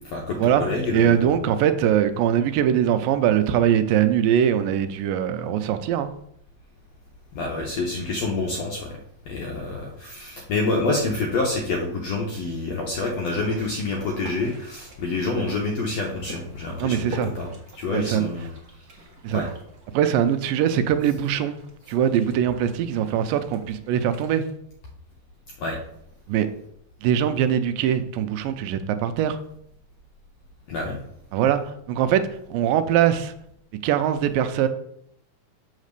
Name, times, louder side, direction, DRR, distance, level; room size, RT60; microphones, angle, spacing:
voice 1, 0.1-1.3 7.4-9.0 9.3-17.5 17.8-18.5 19.3-19.5 25.6-25.8 30.7-31.0, left 3 dB, 70° left, 0 dB, 1.6 m, -27 dB
voice 2, 0.9-6.1 16.8-17.3 17.9-18.3 19.2-19.4 19.9-21.6 21.9-24.4 26.3-26.5 27.0-29.4 31.3-32.2 32.5-33.3 33.8-34.7, right 9 dB, 80° right, 10 dB, 2.2 m, -22 dB
sound 1, 13.3-24.5, right 2 dB, 50° right, 1.1 m, -45 dB
7.4 x 4.1 x 6.6 m, 0.72 s
omnidirectional pair, 4.1 m